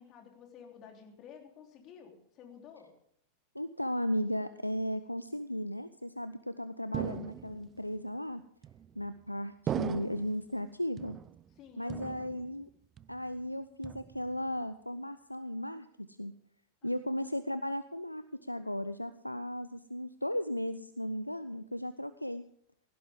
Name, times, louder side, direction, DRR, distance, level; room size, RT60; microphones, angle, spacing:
voice 1, 0.0-2.9 11.6-12.4 16.8-17.1, left 7 dB, 35° left, 2 dB, 3.4 m, -53 dB
voice 2, 3.5-8.4 9.0-11.2 11.8-12.7 13.1-16.3 16.8-22.4, equal, 90° left, 13 dB, 0.5 m, -36 dB
sound 1, 6.9-7.8 8.6-9.2 9.7-10.5 11.0-11.6 11.9-12.7 13.0-13.4 13.8-14.4, right 9 dB, 25° right, 0.5 m, -39 dB
17.0 x 15.5 x 3.6 m, 0.66 s
figure-of-eight pair, 90°, 0 cm